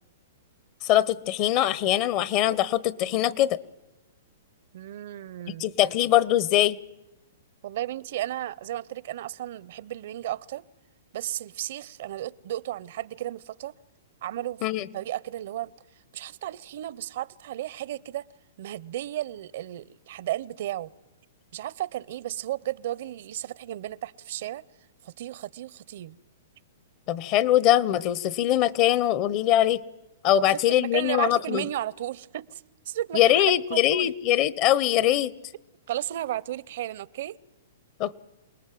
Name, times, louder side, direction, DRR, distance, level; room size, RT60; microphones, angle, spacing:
voice 1, 0.8-3.6 5.6-6.8 14.6-14.9 27.1-29.8 30.2-31.7 33.1-35.3 38.0-38.2, left 12 dB, 40° left, 1.0 m, -22 dB
voice 2, 4.7-5.7 7.6-10.6 11.1-13.7 14.2-14.6 14.9-15.7 16.1-18.3 18.6-20.9 21.5-24.6 25.0-26.2 30.3-34.1 35.9-37.4, right 13 dB, 60° right, 0.7 m, -34 dB
28.0 x 19.5 x 7.6 m
hypercardioid pair, 140°, 0 cm